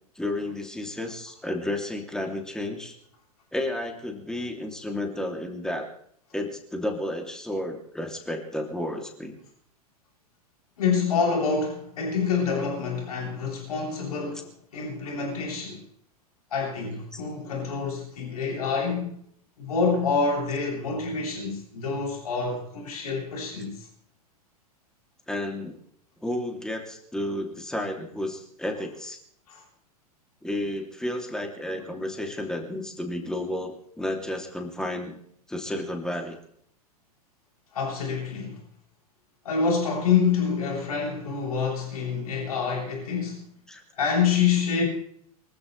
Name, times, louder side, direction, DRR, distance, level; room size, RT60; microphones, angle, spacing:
voice 1, 0.1-2.9 3.5-5.9 6.3-9.4 17.1-17.2 25.3-25.7 26.2-29.2 30.4-35.2 35.5-36.4 43.7-43.8, left 1 dB, 5° left, 3.0 m, -32 dB
voice 2, 10.8-15.8 16.5-19.1 19.6-23.9 29.5-29.6 37.7-38.6 39.4-43.4 44.0-44.8, left 5 dB, 70° left, 7.9 m, -27 dB
24.5 x 15.0 x 3.4 m
hypercardioid pair, 100°, 20 cm